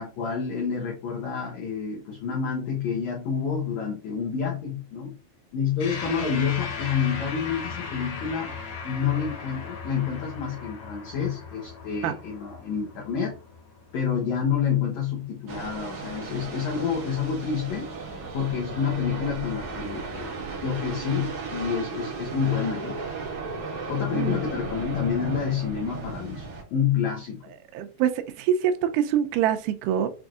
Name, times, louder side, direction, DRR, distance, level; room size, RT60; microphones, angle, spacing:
voice 1, 0.0-5.1 5.5-8.5 8.8-13.3 13.9-17.9 18.3-20.3 20.6-23.0 23.9-27.4, left 7 dB, 70° left, -2 dB, 1.9 m, -28 dB
sound 1, 5.8-14.5, left 5 dB, 85° left, 3.1 m, -37 dB
sound 2, 15.5-26.6, right 4 dB, 65° right, 1.1 m, -35 dB
voice 2, 27.7-30.1, right 9 dB, 80° right, 7 dB, 2.0 m, -25 dB
6.0 x 2.6 x 2.4 m, 0.33 s
omnidirectional pair, 4.0 m